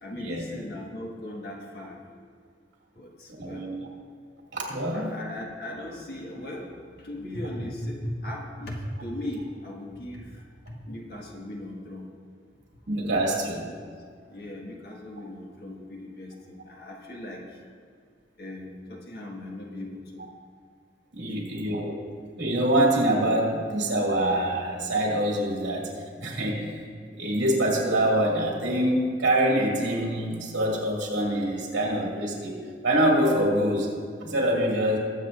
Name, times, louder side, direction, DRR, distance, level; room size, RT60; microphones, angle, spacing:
voice 1, 0.0-2.2 3.0-3.7 4.9-12.1 13.7-13.9 14.3-17.5 18.4-20.3 21.2-21.6, left 1 dB, 55° left, -2 dB, 1.7 m, -38 dB
voice 2, 3.3-3.8 4.5-5.1 12.9-13.6 21.1-22.0 22.3-25.9 26.2-26.8 27.2-32.6 32.8-33.9 34.2-35.0, right 1 dB, 75° right, -2 dB, 2.4 m, -25 dB
21.0 x 7.6 x 2.6 m, 2.1 s
head